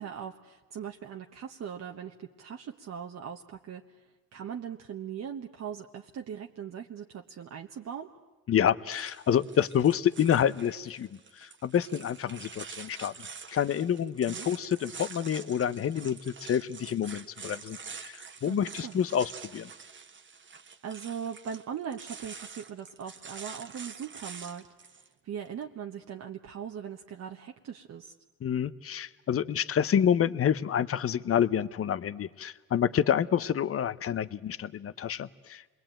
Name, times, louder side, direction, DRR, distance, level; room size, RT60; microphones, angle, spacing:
voice 1, 0.0-3.8 4.3-8.1 14.3-14.5 18.4-19.0 20.8-24.9 25.2-28.1, right 8 dB, 60° right, 2 dB, 1.2 m, -40 dB
voice 2, 8.5-11.1 11.3-13.1 13.5-19.7 28.4-35.7, left 9 dB, 50° left, 16 dB, 0.9 m, -28 dB
sound 1, 8.9-25.1, right 5 dB, 40° right, 1.3 m, -46 dB
27.0 x 21.5 x 9.0 m, 1.3 s
cardioid pair, 90°, 30 cm